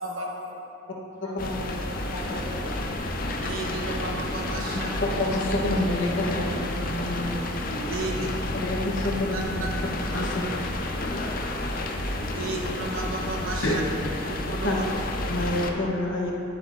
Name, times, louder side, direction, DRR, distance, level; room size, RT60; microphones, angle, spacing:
voice 1, 0.0-0.6 1.2-1.5 2.4-2.7 4.8-4.9 8.4-8.5 10.1-10.6 11.1-12.1 12.4-12.7, left 2 dB, 90° left, -3 dB, 1.3 m, -43 dB
sound 1, 1.1-15.4, right 1 dB, 35° right, 0.7 m, -47 dB
voice 2, 1.2-1.8 2.3-2.8 4.7-7.3 8.2-9.6 10.1-10.3 13.6-13.8 14.6-14.8 15.3-16.3, left 1 dB, 65° left, -2 dB, 1.1 m, -28 dB
sound 2, 1.4-15.7, left 1 dB, 45° left, 0.5 m, -31 dB
voice 3, 3.2-4.9 7.7-8.3 9.3-9.7 10.2-10.3 12.2-13.8 14.2-14.8, right 2 dB, 85° right, -1 dB, 1.1 m, -33 dB
9.9 x 7.7 x 2.6 m, 3.0 s
head